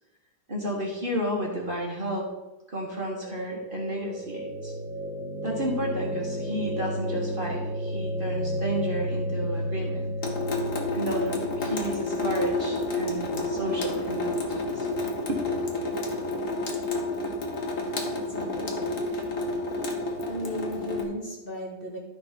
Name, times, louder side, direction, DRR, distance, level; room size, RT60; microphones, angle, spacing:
voice 1, 0.5-2.3 2.7-4.7 5.4-10.1 10.9-14.9 15.3-15.4, right 1 dB, 30° right, -3 dB, 1.8 m, -32 dB
sound 1, 3.0-15.1, equal, 70° left, 4.0 m, -33 dB
Water tap faucet / Sink (filling or washing) / Drip, 10.2-21.0, left 2 dB, 50° left, 1.5 m, -30 dB
voice 2, 18.1-19.6 20.3-22.0, equal, 30° left, -2 dB, 1.8 m, -37 dB
12.5 x 4.4 x 5.8 m, 1.0 s
omnidirectional pair, 2.0 m